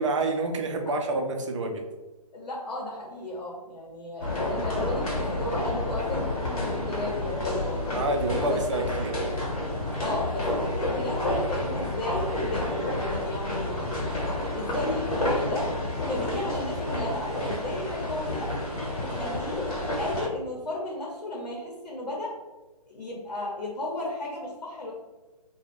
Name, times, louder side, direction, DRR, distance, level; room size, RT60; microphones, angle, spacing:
voice 1, 0.0-1.8 7.9-9.2, right 2 dB, 50° right, 4 dB, 0.5 m, -28 dB
voice 2, 2.3-8.1 8.5-8.6 10.0-12.7 13.0-13.7 14.5-15.7 16.1-18.5 19.0-19.7 20.0-22.4 22.9-24.9, left 2 dB, 85° left, -3 dB, 0.9 m, -34 dB
sound 1, 4.2-20.3, left 1 dB, 60° left, 1.0 m, -30 dB
2.5 x 2.2 x 3.3 m, 1.1 s
hypercardioid pair, 155°, 20 cm